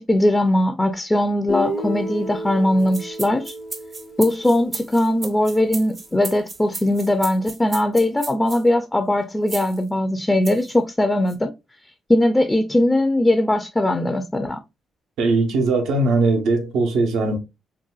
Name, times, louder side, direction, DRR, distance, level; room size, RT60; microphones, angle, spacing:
voice 1, 0.0-3.5 4.2-11.5 12.1-14.6, left 1 dB, 15° left, 0.4 m, -20 dB
Guitar, 1.5-5.5, equal, 70° left, 0.9 m, -32 dB
sound 1, 2.8-8.6 9.5-9.8 10.4-10.7 11.3-11.4, right 3 dB, 35° right, 0.6 m, -34 dB
voice 2, 15.2-17.4, right 3 dB, 80° right, 0.7 m, -20 dB
3.8 x 2.2 x 2.3 m
cardioid pair, 90°, 0 cm